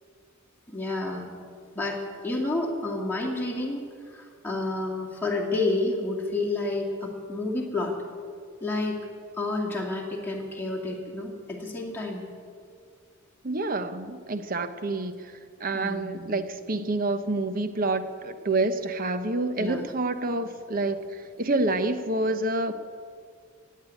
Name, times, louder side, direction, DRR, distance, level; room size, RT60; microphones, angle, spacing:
voice 1, 0.7-1.3 1.7-7.9 8.6-9.0 9.4-12.2 15.7-16.4 19.6-19.8, left 2 dB, 10° left, -3 dB, 2.2 m, -30 dB
voice 2, 13.4-15.3 15.6-22.7, right 2 dB, 45° right, 10 dB, 1.0 m, -28 dB
16.5 x 9.5 x 9.0 m, 2.2 s
head